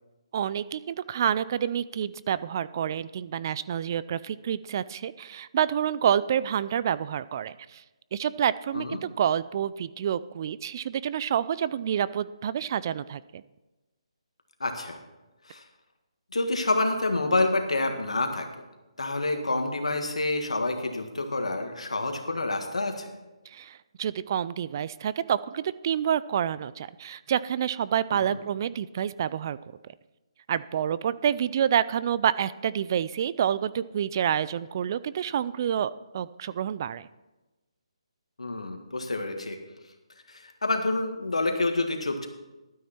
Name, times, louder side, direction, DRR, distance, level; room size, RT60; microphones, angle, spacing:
voice 1, 0.3-7.8 8.1-13.4 23.5-29.6 30.5-37.1, right 9 dB, 35° right, 17 dB, 0.3 m, -28 dB
voice 2, 14.6-15.0 15.5-15.6 16.3-18.5 19.0-23.1 28.1-28.4 38.4-39.6 40.3-42.3, left 2 dB, 90° left, 5 dB, 1.7 m, -28 dB
12.0 x 9.4 x 4.4 m, 1.1 s
hypercardioid pair, 155°, 3 cm